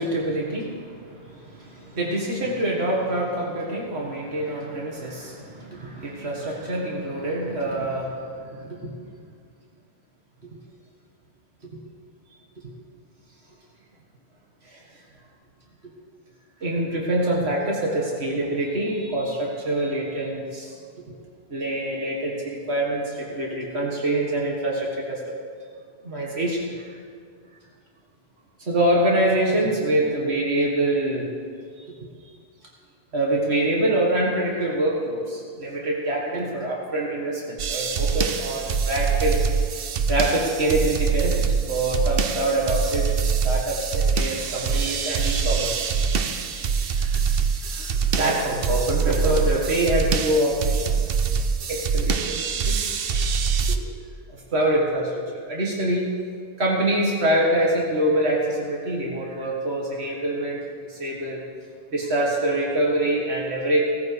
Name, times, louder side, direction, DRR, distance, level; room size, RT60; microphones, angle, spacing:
voice 1, 0.0-8.9 14.7-14.8 16.6-20.7 21.5-25.2 26.0-26.8 28.7-31.3 31.8-31.9 33.1-39.4 40.1-43.1 43.4-45.9 47.0-47.2 47.6-47.9 48.2-51.0 51.7-52.8 54.5-56.1 56.6-60.6 60.9-61.4 61.9-63.8, right 1 dB, 80° right, -3 dB, 2.0 m, -25 dB
sound 1, 37.6-53.8, right 6 dB, 65° right, 0.9 m, -24 dB
17.5 x 14.0 x 3.4 m, 2.1 s
omnidirectional pair, 1.1 m